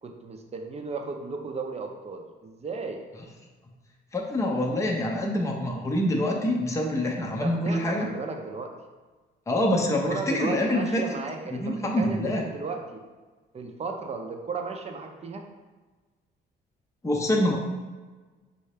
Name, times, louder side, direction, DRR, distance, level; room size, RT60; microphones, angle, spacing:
voice 1, 0.0-3.0 7.4-8.7 9.8-13.0 13.5-15.4, right 4 dB, 30° right, 3 dB, 0.6 m, -35 dB
voice 2, 4.1-8.1 9.5-11.0 11.5-12.4 17.0-17.6, left 1 dB, 15° left, 0 dB, 0.6 m, -25 dB
5.5 x 2.7 x 3.3 m, 1.3 s
cardioid pair, 90°, 20 cm